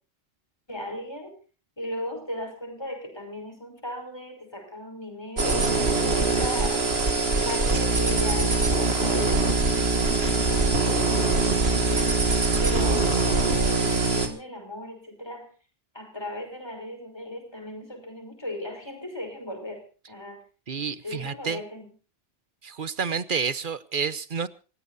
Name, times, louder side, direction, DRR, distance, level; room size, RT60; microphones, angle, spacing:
voice 1, 0.7-1.4 1.8-5.8 6.1-6.9 7.5-12.2 12.6-15.5 15.9-20.4 21.0-21.9, left 1 dB, 25° left, 5 dB, 5.9 m, -37 dB
sound 1, 5.4-14.3, right 3 dB, 75° right, 2.5 m, -23 dB
voice 2, 20.7-21.6 22.6-24.5, right 6 dB, 55° right, 15 dB, 1.1 m, -29 dB
27.5 x 16.5 x 2.7 m, 0.35 s
omnidirectional pair, 1.0 m